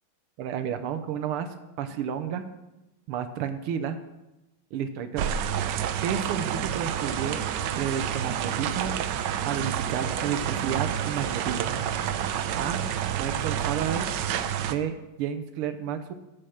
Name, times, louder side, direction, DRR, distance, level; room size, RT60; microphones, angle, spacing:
voice 1, 0.4-1.5 1.8-2.4 3.1-4.0 4.7-5.4 6.0-7.4 7.7-9.0 9.4-11.8 12.5-12.9 13.2-14.1 14.6-16.1, right 8 dB, 85° right, 9 dB, 1.7 m, -31 dB
sound 1, 5.2-14.8, right 9 dB, 70° right, 1.1 m, -29 dB
8.6 x 7.2 x 7.1 m, 0.99 s
omnidirectional pair, 2.4 m